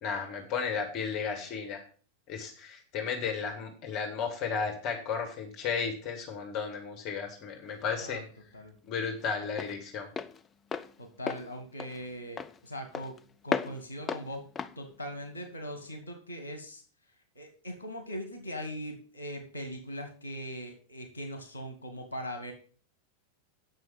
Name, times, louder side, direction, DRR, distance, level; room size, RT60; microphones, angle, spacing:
voice 1, 0.0-1.8 2.3-8.2 8.9-10.1, left 6 dB, 40° left, 3 dB, 2.4 m, -34 dB
Walk footsteps, 7.3-16.0, left 6 dB, 20° left, 0.7 m, -38 dB
voice 2, 11.0-13.2 13.4-14.5 14.8-16.8 17.4-22.5, equal, 90° right, 6 dB, 1.8 m, -40 dB
8.9 x 6.3 x 7.3 m, 0.41 s
figure-of-eight pair, 90°, 0 cm